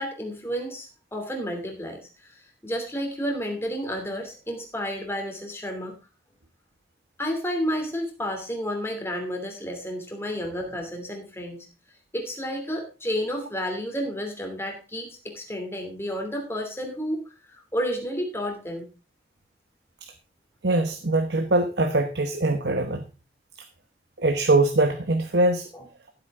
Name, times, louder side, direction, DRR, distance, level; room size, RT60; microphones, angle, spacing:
voice 1, 0.0-5.9 7.2-11.7 12.1-17.2 17.5-18.9 25.7-25.8, equal, 15° left, 2 dB, 2.9 m, -31 dB
voice 2, 20.6-23.0 24.2-25.7, right 2 dB, 70° right, 7 dB, 1.1 m, -22 dB
14.0 x 8.3 x 3.7 m, 0.33 s
head